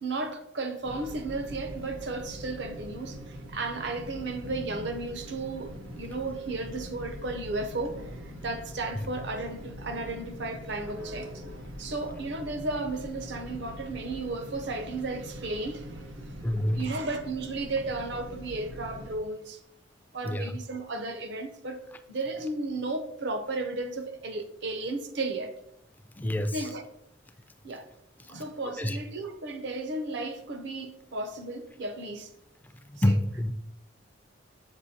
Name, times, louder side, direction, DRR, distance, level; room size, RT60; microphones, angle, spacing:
voice 1, 0.0-11.4 11.8-16.4 16.7-19.6 20.1-25.5 26.5-26.8 27.6-27.9 28.3-32.3, right 2 dB, 60° right, 0.6 m, -34 dB
sound 1, 0.8-19.2, equal, 90° right, 0.9 m, -43 dB
voice 2, 16.4-16.8 20.2-20.6 26.2-26.7 28.2-28.3 28.8-29.0 32.9-33.5, left 1 dB, 10° left, 0.3 m, -27 dB
7.1 x 5.0 x 2.7 m
head